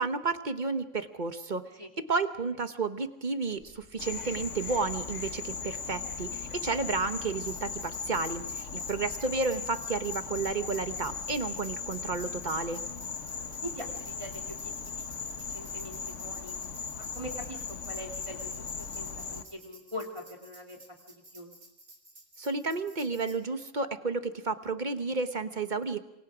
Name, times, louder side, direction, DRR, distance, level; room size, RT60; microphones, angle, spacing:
voice 1, 0.0-1.6 2.1-12.8 22.4-26.0, right 4 dB, 40° right, 9 dB, 1.1 m, -32 dB
sound 1, 3.5-10.8, equal, 70° right, 8.5 m, -58 dB
Insect, 4.0-19.4, left 5 dB, 70° left, 1.6 m, -38 dB
Tambourine, 7.5-23.4, right 2 dB, 85° right, 3.4 m, -54 dB
voice 2, 8.7-9.1 13.6-15.1 15.5-16.6 17.0-20.8 21.1-21.5, equal, 25° right, 1 dB, 2.9 m, -43 dB
27.5 x 23.5 x 5.0 m, 0.88 s
omnidirectional pair, 1.3 m